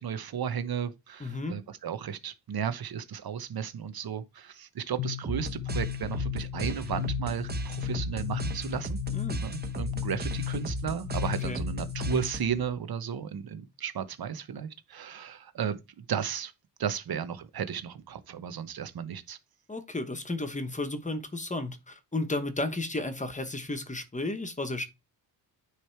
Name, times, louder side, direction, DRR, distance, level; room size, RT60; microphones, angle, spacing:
voice 1, 0.0-9.0 9.4-16.5 16.8-19.4, right 8 dB, 60° right, 1.0 m, -34 dB
voice 2, 1.2-1.6 9.1-9.5 11.4-11.7 19.7-24.8, left 2 dB, 15° left, 1.0 m, -33 dB
sound 1, 5.0-12.5, left 15 dB, 60° left, 0.6 m, -35 dB
sound 2, 5.2-12.7, right 2 dB, 25° right, 1.1 m, -36 dB
9.7 x 3.3 x 4.5 m
wide cardioid pair, 140°, 42 cm